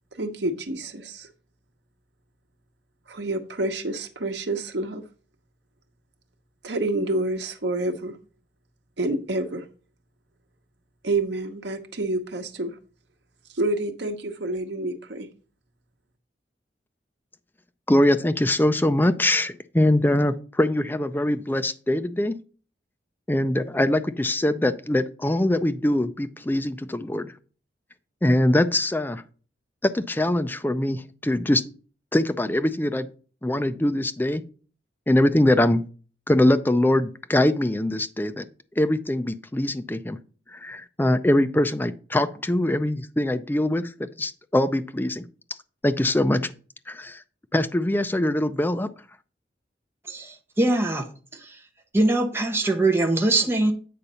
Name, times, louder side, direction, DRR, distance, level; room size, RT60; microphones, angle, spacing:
voice 1, 0.2-1.3 3.1-5.0 6.6-8.1 9.0-9.6 11.0-12.7 13.6-15.3, right 2 dB, 75° right, 6 dB, 1.0 m, -28 dB
voice 2, 17.9-22.4 23.3-27.3 28.2-29.2 29.8-31.6 32.1-33.1 33.4-34.4 35.1-35.8 36.3-38.4 38.8-40.2 40.5-45.2 45.8-46.5 46.9-47.2 47.5-48.9, left 1 dB, 10° left, 10 dB, 0.4 m, -23 dB
voice 3, 50.1-51.1 51.3-51.6 51.9-53.7, right 2 dB, 15° right, 3 dB, 0.9 m, -22 dB
8.5 x 4.0 x 5.5 m, 0.39 s
head